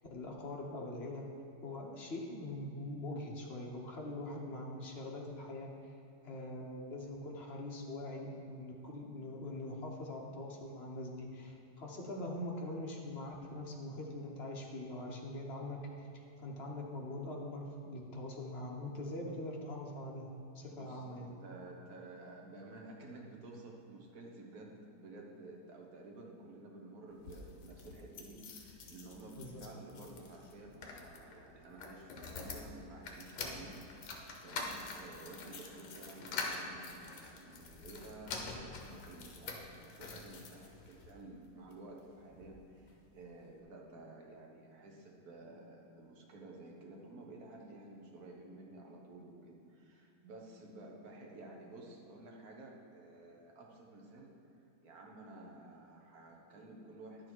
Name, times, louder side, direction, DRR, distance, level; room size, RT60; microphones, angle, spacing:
voice 1, 0.1-1.3 1.6-6.0 6.2-15.8 16.1-20.3 20.5-21.3 29.4-29.6, left 1 dB, 40° left, -1 dB, 1.0 m, -43 dB
voice 2, 20.7-54.3 54.8-57.3, right 2 dB, 50° right, -1 dB, 1.5 m, -52 dB
sound 1, 27.1-41.1 41.7-42.6 42.9-43.0 43.2-43.3, left 3 dB, 60° left, 1.4 m, -46 dB
10.5 x 6.4 x 4.5 m, 2.8 s
omnidirectional pair, 2.3 m